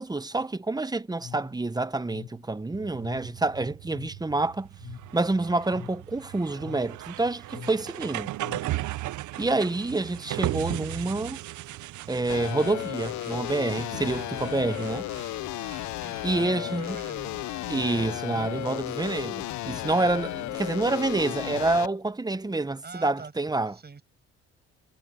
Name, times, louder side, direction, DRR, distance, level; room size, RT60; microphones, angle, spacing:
voice 1, 0.0-4.7 5.1-8.3 9.4-11.4 12.1-15.1 16.2-17.0 17.7-23.7, right 2 dB, 15° right, 1.0 m, -28 dB
sound 1, 1.2-9.0, left 8 dB, 55° left, 6.6 m, -46 dB
sound 2, 2.7-20.7, right 16 dB, 75° right, 0.7 m, -38 dB
sound 3, 12.3-21.9, left 17 dB, 70° left, 0.4 m, -34 dB
voice 2, 16.0-17.5 18.5-18.9 22.8-24.0, right 5 dB, 35° right, 6.6 m, -44 dB
cardioid pair, 90°, 30 cm